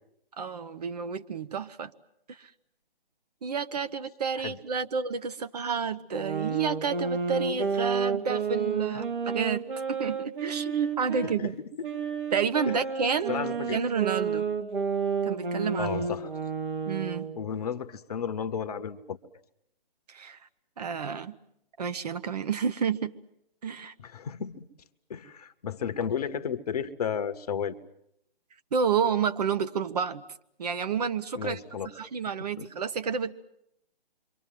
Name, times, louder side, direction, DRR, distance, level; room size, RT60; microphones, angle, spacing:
voice 1, 0.4-1.9 2.3-2.5 3.4-11.6 12.3-13.4 13.7-14.4 15.3-16.1 16.9-17.3 20.1-20.4 20.8-21.3 21.8-23.1 23.6-23.9 28.7-30.2 30.6-31.6 31.9-33.3, right 6 dB, 40° right, 10 dB, 0.9 m, -30 dB
sound 1, 6.1-11.3 11.8-17.4, right 5 dB, 60° right, 2.3 m, -31 dB
voice 2, 13.3-13.8 15.8-16.3 17.4-19.2 24.0-24.7 25.1-27.8 31.4-31.9 32.6-32.7, left 7 dB, 40° left, 10 dB, 1.1 m, -33 dB
27.5 x 24.0 x 7.6 m, 0.76 s
figure-of-eight pair, 145°, 30 cm